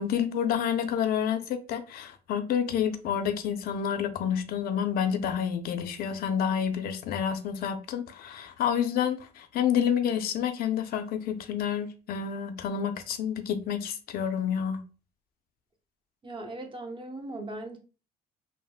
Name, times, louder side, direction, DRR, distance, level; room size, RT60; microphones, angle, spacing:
voice 1, 0.0-14.8, left 8 dB, 65° left, 0.4 m, -29 dB
voice 2, 16.2-17.8, right 2 dB, 30° right, 0.7 m, -38 dB
3.4 x 2.1 x 2.3 m
cardioid pair, 110°, 17 cm